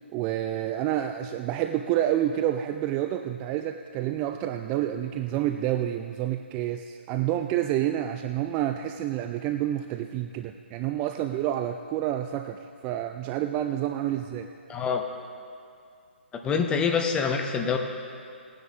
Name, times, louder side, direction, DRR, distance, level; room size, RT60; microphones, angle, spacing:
voice 1, 0.1-14.5, right 12 dB, 20° right, 7 dB, 0.3 m, -28 dB
voice 2, 14.7-15.0 16.3-17.8, left 6 dB, 15° left, 3 dB, 0.8 m, -26 dB
17.5 x 9.6 x 3.5 m, 2.4 s
figure-of-eight pair, 135°, 6 cm